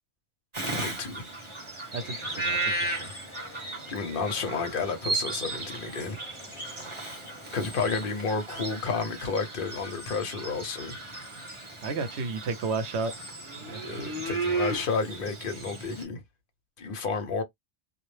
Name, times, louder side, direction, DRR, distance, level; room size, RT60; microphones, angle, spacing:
Bird vocalization bird call bird song, 0.5-16.0, right 2 dB, 30° right, 0.8 m, -35 dB
voice 1, 0.7-1.3 3.9-6.2 7.5-11.0 13.8-16.2 16.8-17.4, left 4 dB, 55° left, 0.9 m, -31 dB
sound 1, 1.9-7.9, left 3 dB, 25° left, 1.0 m, -50 dB
voice 2, 1.9-3.1 7.6-7.7 11.8-13.1 13.5-14.0, right 4 dB, 80° right, 0.9 m, -33 dB
2.4 x 2.0 x 3.1 m
omnidirectional pair, 1.1 m